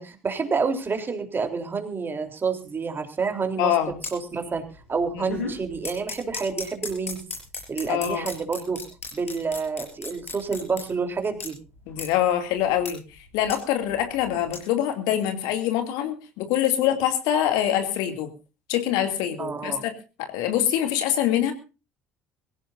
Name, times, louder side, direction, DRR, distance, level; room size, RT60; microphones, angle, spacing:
voice 1, 0.0-3.7 4.1-4.6 4.9-7.2 7.7-8.8 9.1-11.6 19.4-19.8, right 5 dB, 30° right, 5 dB, 3.6 m, -28 dB
voice 2, 3.6-4.0 5.3-5.4 7.9-8.3 11.9-13.0 13.3-18.3 18.7-19.9 20.2-21.5, left 11 dB, 65° left, 6 dB, 2.6 m, -24 dB
sound 1, 3.8-4.1 4.5-4.8 5.1-10.8 11.3-11.5 11.9-12.1 12.6-12.9 13.2-14.6, left 4 dB, 85° left, 6.0 m, -34 dB
23.5 x 15.5 x 2.7 m, 0.32 s
figure-of-eight pair, 55°, 8 cm